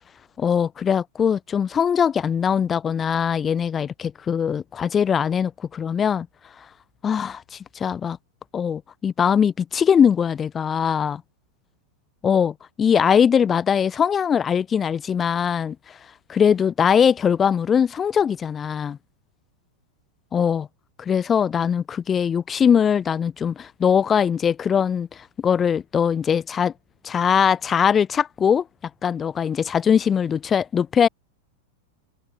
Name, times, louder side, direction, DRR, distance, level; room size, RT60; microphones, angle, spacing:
voice 1, 0.4-6.3 7.0-8.2 8.5-11.2 12.2-15.8 16.3-19.0 20.3-20.7 21.0-25.1 25.4-26.7 27.0-28.6 29.0-31.1, left 7 dB, 20° left, 7.2 m, -21 dB
figure-of-eight pair, 90°, 0 cm